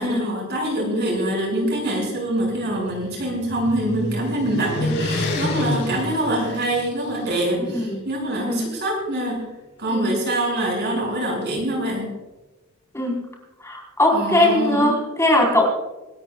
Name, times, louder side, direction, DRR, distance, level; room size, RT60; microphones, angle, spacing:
voice 1, 0.0-9.5 9.8-12.1 14.1-15.1, right 1 dB, 55° right, 0 dB, 6.1 m, -25 dB
sound 1, 2.5-7.2, left 2 dB, 55° left, 4.6 m, -28 dB
voice 2, 7.7-8.0 8.4-8.7 9.9-10.1 12.9-13.2 13.6-15.6, left 1 dB, 15° left, 0 dB, 4.1 m, -20 dB
26.0 x 13.5 x 2.4 m, 1.1 s
head